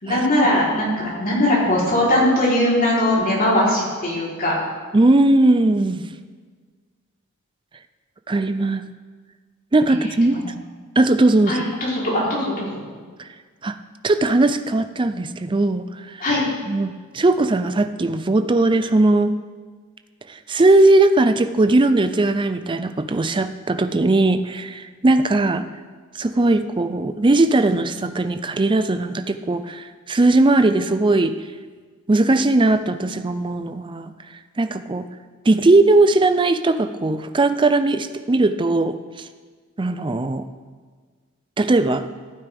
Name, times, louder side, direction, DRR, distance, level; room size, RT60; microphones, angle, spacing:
voice 1, 0.0-4.5 10.3-10.4 11.5-12.7 16.2-16.4, left 1 dB, 40° left, -6 dB, 3.7 m, -20 dB
voice 2, 4.9-6.0 8.3-8.9 9.7-10.4 11.0-11.6 13.6-13.8 14.0-16.2 16.7-19.4 20.5-25.6 26.2-31.3 32.1-34.1 34.6-35.1 35.5-39.0 39.8-40.5 41.6-42.1, right 2 dB, 20° right, 9 dB, 0.5 m, -18 dB
15.0 x 9.4 x 3.5 m, 1.5 s
head